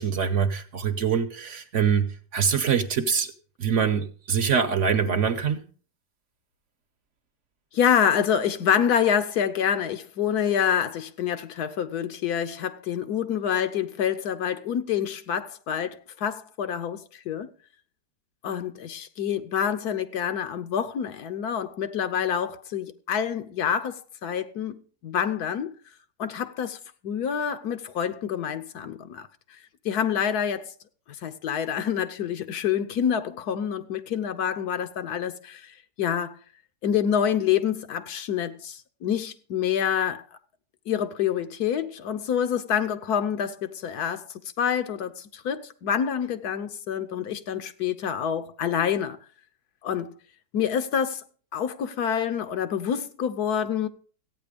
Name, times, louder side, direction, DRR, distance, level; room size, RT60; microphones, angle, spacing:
voice 1, 0.0-2.1 2.3-3.3 3.6-5.6, right 7 dB, 55° right, 1.1 m, -24 dB
voice 2, 7.7-17.5 18.4-25.7 26.2-26.8 27.0-29.3 29.8-30.7 31.2-36.4 36.8-40.2 40.9-44.2 44.6-49.2 49.8-50.1 50.5-51.2 51.5-53.9, left 8 dB, 75° left, 1.4 m, -27 dB
14.0 x 9.1 x 5.1 m
omnidirectional pair, 1.7 m